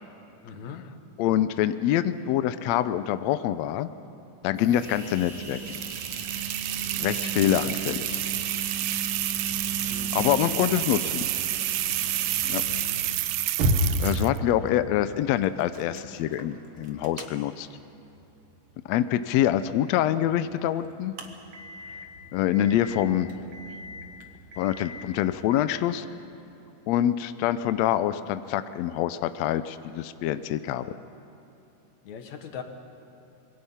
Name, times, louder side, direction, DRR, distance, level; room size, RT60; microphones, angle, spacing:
voice 1, 0.4-0.9 9.9-10.7 32.0-32.6, left 7 dB, 65° left, 6 dB, 2.7 m, -40 dB
voice 2, 1.2-3.9 4.4-5.8 7.0-8.2 10.1-11.2 12.5-12.6 14.0-17.7 18.9-21.1 22.3-23.3 24.6-26.0 26.9-30.9, left 11 dB, 85° left, 12 dB, 1.5 m, -25 dB
sound 1, 4.4-13.9, right 3 dB, 25° right, 3.5 m, -37 dB
sound 2, 5.7-14.4, right 15 dB, 85° right, 1.5 m, -30 dB
sound 3, 10.9-25.5, right 1 dB, 50° right, 2.0 m, -35 dB
26.0 x 22.0 x 5.7 m, 3.0 s
omnidirectional pair, 3.8 m